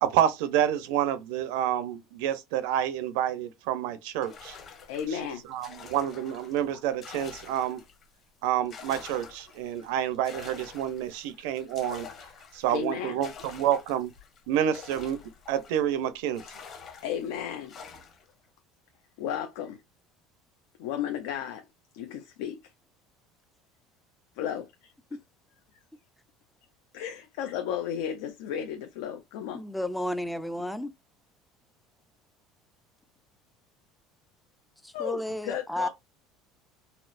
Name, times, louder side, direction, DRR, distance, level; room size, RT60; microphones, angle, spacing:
voice 1, 0.0-4.6 5.1-5.2 5.5-7.8 8.4-12.1 12.5-14.1 14.5-15.2 15.5-16.4, right 11 dB, 75° right, 0.6 m, -28 dB
sound 1, 4.2-8.1 8.4-16.0 16.4-18.3, left 6 dB, 35° left, 0.9 m, -47 dB
voice 2, 4.9-5.4 5.8-5.9 12.7-13.2 17.0-17.7 19.2-19.8 20.8-21.6 21.9-22.6 24.4-24.9 26.9-29.6 34.9-35.9, left 9 dB, 80° left, 0.5 m, -34 dB
voice 3, 29.5-30.9 35.0-35.9, left 1 dB, 5° left, 0.3 m, -32 dB
4.2 x 2.0 x 2.5 m
cardioid pair, 150°, 0 cm